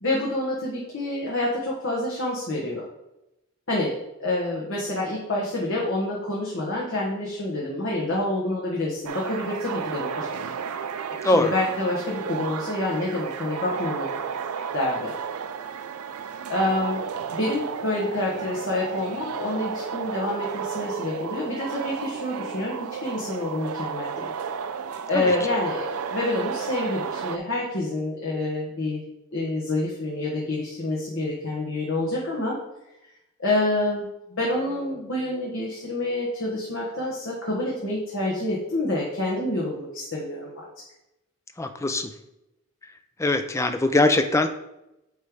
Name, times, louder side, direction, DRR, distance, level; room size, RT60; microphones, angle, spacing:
voice 1, 0.0-2.8 3.7-10.3 11.3-14.2 14.7-15.1 16.5-17.1 17.3-24.3 25.1-29.0 29.3-32.6 33.4-34.1 34.4-40.6, left 2 dB, 60° left, -5 dB, 1.4 m, -27 dB
sound 1, 9.0-27.4, right 7 dB, 80° right, 0.4 m, -33 dB
voice 2, 41.6-42.1 43.2-44.5, left 2 dB, 15° left, 8 dB, 0.4 m, -21 dB
8.4 x 3.3 x 4.8 m, 0.91 s
head